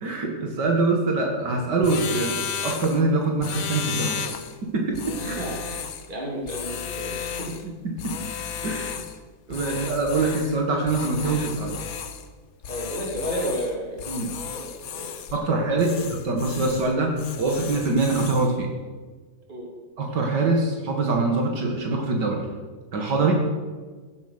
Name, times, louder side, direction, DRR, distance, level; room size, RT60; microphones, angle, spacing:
voice 1, 0.0-2.4 2.6-4.3 4.6-5.4 7.8-8.2 8.6-9.0 9.5-11.8 14.1-14.3 15.3-18.7 20.0-22.5 22.9-23.3, right 3 dB, 80° right, 1 dB, 2.4 m, -24 dB
sound 1, 1.8-3.0 3.4-4.5 4.9-6.1 6.5-7.6 8.0-9.2 9.5-10.6 10.9-12.2 12.6-13.7 14.0-15.4 15.8-16.9 17.2-18.5, left 7 dB, 60° left, 1.3 m, -33 dB
voice 2, 5.2-7.6 9.7-9.9 12.7-15.2 15.5-15.6 19.5-19.7, equal, 30° right, -2 dB, 3.2 m, -33 dB
16.0 x 8.3 x 6.7 m, 1.4 s
omnidirectional pair, 1.8 m